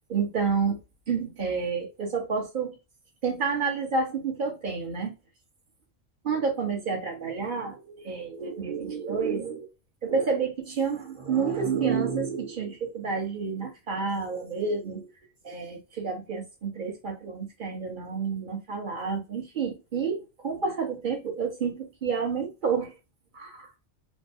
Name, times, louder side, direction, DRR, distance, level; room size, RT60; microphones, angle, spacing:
voice 1, 0.1-0.8 1.1-2.8 3.2-5.1 6.2-9.7 10.0-15.1 15.4-22.9 23.3-23.7, right 5 dB, 45° right, 1.2 m, -29 dB
4.0 x 2.2 x 2.6 m
omnidirectional pair, 1.2 m